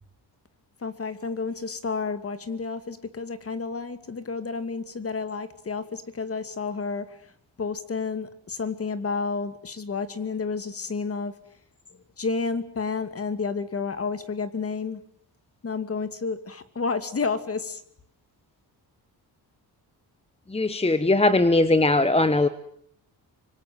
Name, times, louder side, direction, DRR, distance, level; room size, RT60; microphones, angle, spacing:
voice 1, 0.8-7.3 7.6-11.3 12.2-15.0 15.6-17.8, left 4 dB, 35° left, 11 dB, 2.6 m, -30 dB
voice 2, 20.5-22.5, left 2 dB, 15° left, 12 dB, 1.2 m, -20 dB
25.5 x 25.0 x 9.3 m, 0.68 s
cardioid pair, 130°, 41 cm